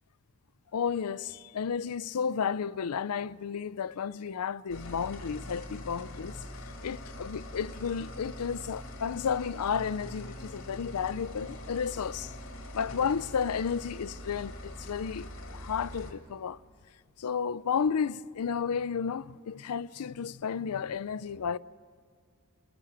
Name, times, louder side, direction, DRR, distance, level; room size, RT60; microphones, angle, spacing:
voice 1, 0.7-6.4 6.6-12.3 12.7-16.6 17.2-21.6, left 6 dB, 90° left, 0.5 m, -32 dB
sound 1, 4.7-16.1, left 1 dB, 60° left, 2.2 m, -43 dB
sound 2, 7.7-13.3, left 3 dB, 15° right, 4.2 m, -58 dB
29.0 x 16.0 x 5.9 m
head